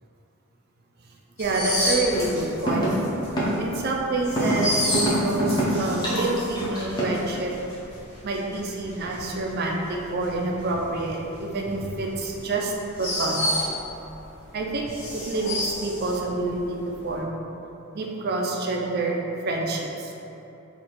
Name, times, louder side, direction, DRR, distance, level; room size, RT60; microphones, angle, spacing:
sound 1, 1.4-14.2 14.5-16.7 16.9-17.2, left 1 dB, 75° left, 1.1 m, -31 dB
voice 1, 1.4-2.9 3.6-7.5 8.2-12.7 13.0-13.7 14.5-17.4 17.9-20.1, right 2 dB, 50° right, -1 dB, 0.4 m, -27 dB
sound 2, 2.1-2.2 2.7-2.9 3.4-3.5 4.4-4.6 4.9-5.7 6.0-7.2, right 1 dB, 20° left, 0.6 m, -25 dB
3.2 x 2.3 x 4.2 m, 3.0 s
head